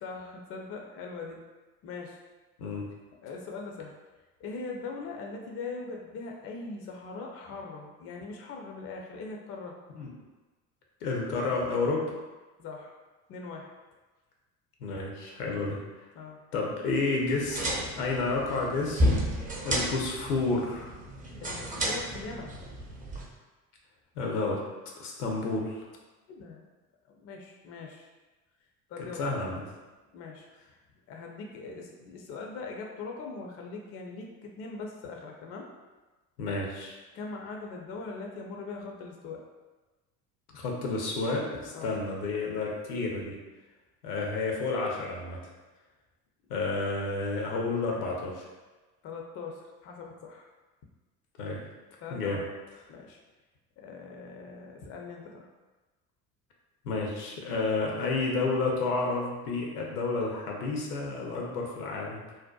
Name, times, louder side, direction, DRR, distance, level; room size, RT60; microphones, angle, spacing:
voice 1, 0.0-1.4 1.8-2.2 3.2-3.9 4.4-9.8 12.6-12.9 13.3-13.7 16.1-16.4 21.4-22.6 26.3-26.6 27.1-28.1 28.9-29.6 30.1-30.5 31.1-35.7 37.1-39.4 41.7-41.9 49.0-50.5 52.0-52.5 52.9-53.2 53.8-55.5, left 4 dB, 35° left, 1 dB, 0.4 m, -41 dB
voice 2, 2.6-2.9 9.9-10.1 11.0-12.2 14.8-15.8 16.5-19.1 19.6-20.9 24.2-24.6 25.0-25.8 29.2-29.6 36.4-37.0 40.5-43.4 44.0-45.4 46.5-48.4 51.4-51.6 52.1-52.4 56.8-62.2, left 3 dB, 80° left, -1 dB, 0.7 m, -30 dB
sound 1, 17.3-23.3, equal, 20° right, 0.5 m, -32 dB
2.6 x 2.1 x 2.2 m, 1.2 s
hypercardioid pair, 65°, 46 cm